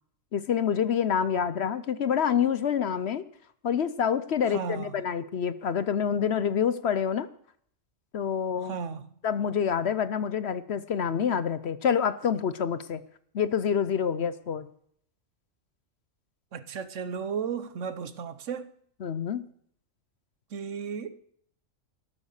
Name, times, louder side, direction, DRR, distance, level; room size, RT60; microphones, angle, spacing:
voice 1, 0.3-3.2 3.6-7.3 8.1-8.7 9.2-13.0 13.3-14.7 19.0-19.5, left 7 dB, 60° left, 0.9 m, -27 dB
voice 2, 4.5-5.0 8.6-9.1 16.5-18.7 20.5-21.2, right 6 dB, 65° right, 1.2 m, -34 dB
13.0 x 12.5 x 6.5 m
omnidirectional pair, 1.4 m